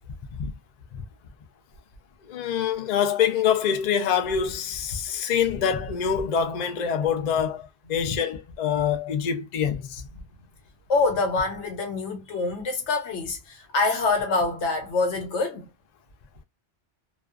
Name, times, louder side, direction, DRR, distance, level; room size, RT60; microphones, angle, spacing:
voice 1, 2.2-10.1, left 8 dB, 55° left, 0.5 m, -25 dB
voice 2, 10.9-15.7, left 3 dB, 80° left, 1.1 m, -25 dB
2.4 x 2.3 x 2.3 m
omnidirectional pair, 1.2 m